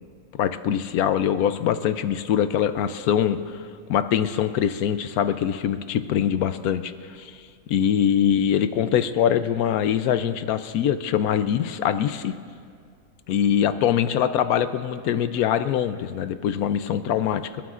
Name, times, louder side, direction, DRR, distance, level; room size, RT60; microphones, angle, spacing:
voice 1, 0.3-7.4 7.7-12.3 13.3-17.5, left 9 dB, 80° left, 11 dB, 1.0 m, -23 dB
28.0 x 13.0 x 2.5 m, 2.2 s
omnidirectional pair, 1.6 m